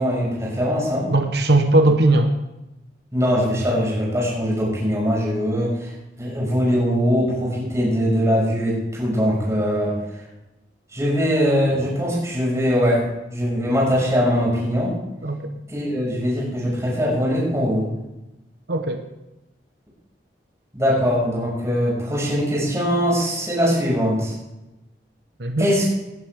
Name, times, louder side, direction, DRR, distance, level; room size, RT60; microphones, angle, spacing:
voice 1, 0.0-1.1 3.1-5.9 6.2-10.0 10.9-13.0 13.3-15.0 15.7-17.9 20.7-24.3 25.6-25.9, equal, 15° right, -5 dB, 6.0 m, -21 dB
voice 2, 1.1-2.3 15.2-15.5 18.7-19.0 25.4-25.7, right 2 dB, 70° right, 6 dB, 1.1 m, -18 dB
19.0 x 11.0 x 3.6 m, 0.97 s
head